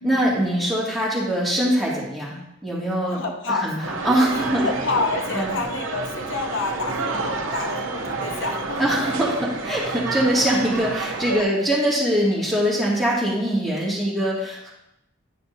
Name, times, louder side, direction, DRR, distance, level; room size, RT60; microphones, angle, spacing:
voice 1, 0.0-3.2 3.6-3.8 4.0-4.7 5.3-5.5 8.8-14.7, equal, ahead, -7 dB, 2.2 m, -22 dB
voice 2, 3.1-9.0 11.3-11.6, left 3 dB, 75° left, 3 dB, 0.8 m, -29 dB
sound 1, 3.8-11.4, right 3 dB, 85° right, 0.8 m, -29 dB
11.0 x 5.6 x 2.7 m, 0.84 s
head